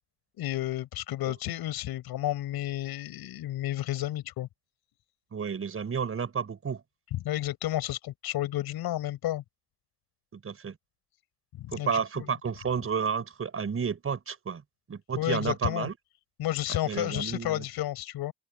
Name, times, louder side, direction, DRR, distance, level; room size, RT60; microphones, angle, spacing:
voice 1, 0.4-4.5 7.1-9.4 11.5-12.3 15.2-15.9 16.4-18.3, left 14 dB, 60° left, 7.7 m, -31 dB
voice 2, 5.3-6.8 10.3-10.8 11.7-14.6 14.9-15.9 16.8-17.6, right 6 dB, 30° right, 5.8 m, -31 dB
open air
supercardioid pair, 95°, 42 cm